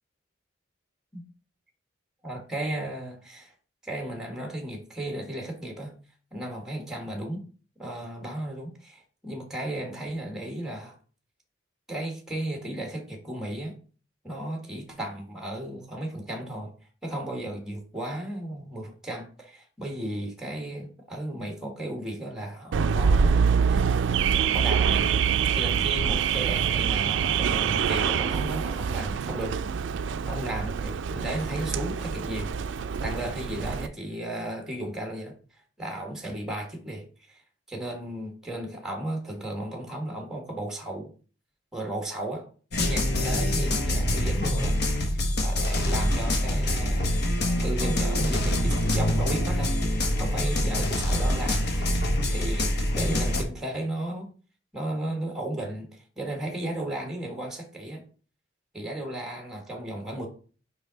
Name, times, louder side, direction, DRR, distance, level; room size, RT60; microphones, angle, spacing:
voice 1, 2.2-3.5 3.8-6.0 6.3-7.4 7.8-10.9 11.9-13.7 14.2-16.7 17.0-29.5 30.2-32.5 33.0-35.3 35.8-37.4 37.7-41.1 41.7-42.5 42.8-44.8 45.1-47.1 47.6-49.7 50.2-54.3 54.7-58.0 58.7-60.3, right 1 dB, 5° right, 1.5 m, -34 dB
Car / Alarm, 22.7-33.9, right 7 dB, 70° right, 0.3 m, -25 dB
sound 1, 42.7-53.4, left 1 dB, 60° left, 1.0 m, -25 dB
5.3 x 4.8 x 3.9 m
head